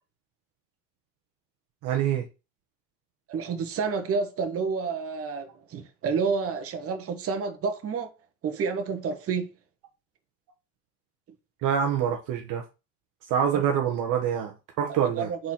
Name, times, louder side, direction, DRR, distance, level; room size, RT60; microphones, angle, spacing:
voice 1, 1.8-2.2 11.6-12.6 13.3-15.3, right 8 dB, 50° right, 1.2 m, -26 dB
voice 2, 3.3-8.1 8.4-9.5 13.5-13.6 15.2-15.5, right 5 dB, 35° right, 1.4 m, -29 dB
4.7 x 4.2 x 5.9 m
supercardioid pair, 125°, 40 cm